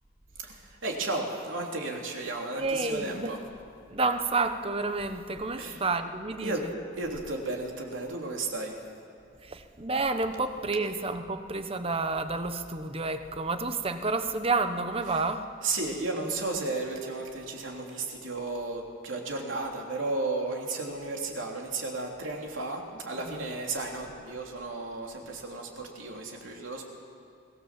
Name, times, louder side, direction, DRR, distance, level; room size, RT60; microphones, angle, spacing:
voice 1, 0.4-3.4 5.6-5.8 6.4-6.7 6.9-8.8 15.1-15.2 15.6-26.8, right 3 dB, 70° right, 0 dB, 3.3 m, -34 dB
voice 2, 2.5-3.3 3.9-6.5 9.4-15.4 23.2-23.5, right 3 dB, 30° right, 8 dB, 1.1 m, -30 dB
24.0 x 18.0 x 7.6 m, 2.6 s
head